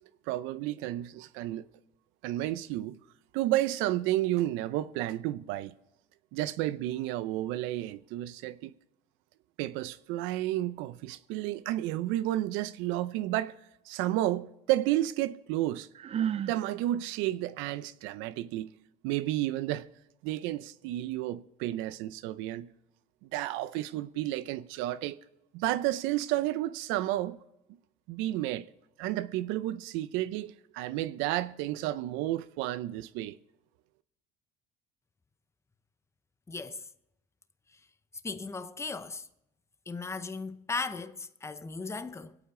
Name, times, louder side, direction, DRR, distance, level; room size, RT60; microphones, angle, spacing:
voice 1, 0.3-1.6 2.2-3.0 3.3-5.7 6.3-8.7 9.6-13.5 13.9-15.9 16.5-18.7 19.0-19.9 20.2-22.7 23.3-25.2 25.5-27.4 28.1-28.7 29.0-33.3, right 15 dB, 85° right, 0.6 m, -31 dB
Sigh, 15.9-16.6, right 9 dB, 30° right, 0.4 m, -31 dB
voice 2, 36.5-36.9 37.7-37.8 38.2-39.3 39.9-42.4, left 4 dB, 15° left, 0.7 m, -37 dB
24.0 x 8.6 x 3.8 m
cardioid pair, 110°, 20 cm